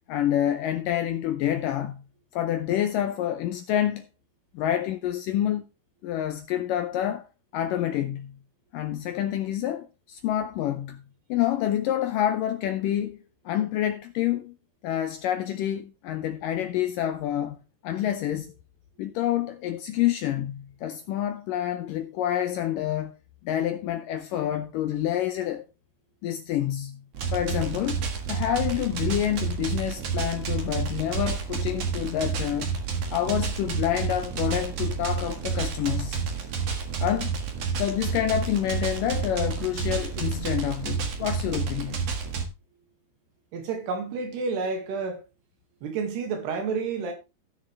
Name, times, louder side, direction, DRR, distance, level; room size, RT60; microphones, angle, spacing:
voice 1, 0.1-2.0 2.3-4.1 4.5-5.6 6.0-7.2 7.5-8.4 8.7-11.0 11.3-13.2 13.5-14.6 14.8-17.6 17.8-18.5 19.0-23.1 23.4-25.7 26.2-27.0 27.3-32.7 33.1-36.2 37.0-37.3 37.8-42.1, left 11 dB, 80° left, 2.0 m, -28 dB
sound 1, 27.1-42.4, right 5 dB, 55° right, 2.1 m, -30 dB
voice 2, 43.5-45.2 45.8-47.1, right 4 dB, 90° right, 4.1 m, -30 dB
16.5 x 6.6 x 3.4 m
omnidirectional pair, 4.6 m